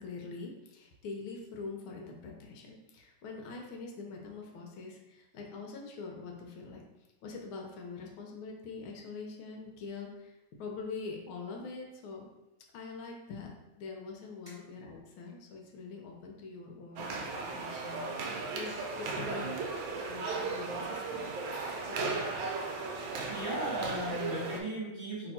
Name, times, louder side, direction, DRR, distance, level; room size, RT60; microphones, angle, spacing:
voice 1, 0.0-6.8 7.2-12.3 12.7-19.5 19.8-21.3 21.9-22.4, left 4 dB, 80° left, 1 dB, 1.5 m, -44 dB
sound 1, 17.0-24.6, right 4 dB, 75° right, 1.3 m, -36 dB
voice 2, 19.1-19.6 23.3-25.3, equal, 30° right, -8 dB, 1.2 m, -37 dB
3.4 x 2.9 x 4.1 m, 1.0 s
omnidirectional pair, 2.3 m